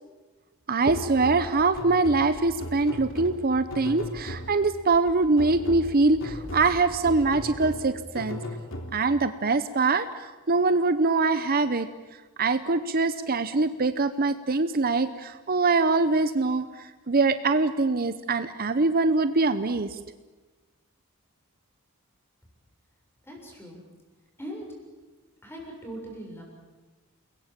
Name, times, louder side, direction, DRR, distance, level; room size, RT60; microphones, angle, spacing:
voice 1, 0.7-8.4 8.9-11.9 12.4-16.7 17.1-20.0, right 3 dB, 45° right, 11 dB, 0.8 m, -23 dB
sound 1, 0.9-4.8 5.4-9.3, left 1 dB, 65° left, 3.5 m, -38 dB
sound 2, 1.1-7.8, equal, 60° right, 7.9 m, -46 dB
voice 2, 23.2-23.8 24.4-24.7 25.4-26.4, right 1 dB, 10° left, 0 dB, 7.1 m, -40 dB
29.0 x 21.5 x 7.6 m, 1.2 s
head